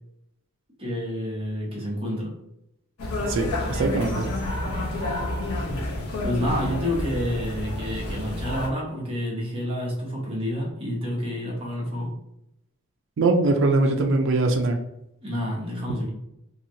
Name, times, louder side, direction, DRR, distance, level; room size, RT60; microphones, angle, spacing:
voice 1, 0.8-2.4 5.9-12.1 15.2-16.1, equal, 25° right, -3 dB, 0.9 m, -29 dB
sound 1, 3.0-8.7, left 1 dB, 75° left, 0.8 m, -29 dB
voice 2, 3.3-4.3 13.2-14.8, right 2 dB, 55° right, 2 dB, 0.4 m, -22 dB
2.9 x 2.7 x 2.6 m, 0.83 s
head